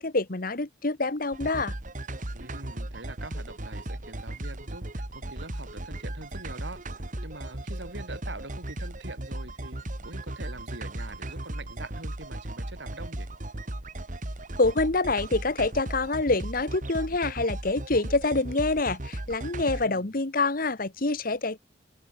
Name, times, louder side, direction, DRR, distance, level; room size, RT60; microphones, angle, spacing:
voice 1, 0.0-1.7 14.6-21.6, left 3 dB, 50° left, 1.5 m, -26 dB
sound 1, 1.3-19.9, right 1 dB, 45° right, 2.1 m, -36 dB
voice 2, 2.3-9.8 10.0-13.3 19.6-20.1, right 2 dB, 75° right, 7.6 m, -44 dB
open air
head